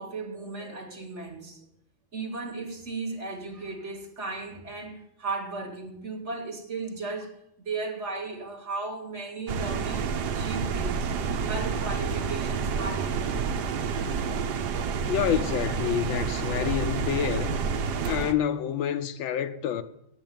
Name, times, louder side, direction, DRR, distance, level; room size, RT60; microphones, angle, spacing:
voice 1, 0.0-1.6 2.1-11.1 11.4-13.5, right 3 dB, 40° right, 1.5 m, -36 dB
sound 1, 9.5-18.3, right 5 dB, 60° right, 1.2 m, -29 dB
voice 2, 15.1-17.6 18.0-19.8, left 10 dB, 75° left, 1.4 m, -28 dB
9.0 x 8.0 x 9.1 m
omnidirectional pair, 2.3 m